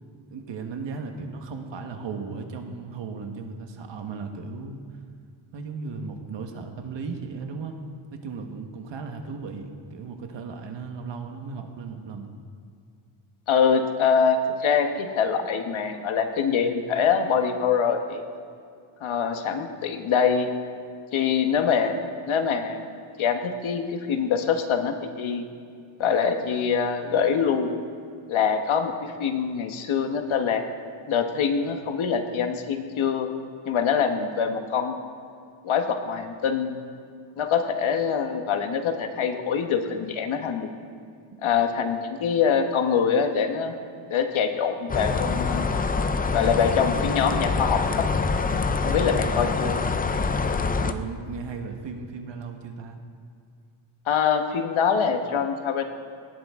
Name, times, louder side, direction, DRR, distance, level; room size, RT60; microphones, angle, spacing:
voice 1, 0.3-4.8 5.5-7.8 8.1-12.3 41.3-41.5 50.8-53.0, right 4 dB, 60° right, 4 dB, 1.4 m, -36 dB
voice 2, 13.5-18.2 19.0-20.5 21.1-25.4 26.0-27.8 28.3-30.6 31.1-33.3 33.6-35.0 35.6-36.7 37.4-40.7 41.4-43.7 44.1-45.7 46.3-48.1 48.8-49.8 54.1-55.8, left 6 dB, 70° left, 6 dB, 1.3 m, -24 dB
sound 1, 44.9-50.9, left 4 dB, 20° left, 0.3 m, -25 dB
18.5 x 13.5 x 3.7 m, 2.3 s
wide cardioid pair, 175°, 49 cm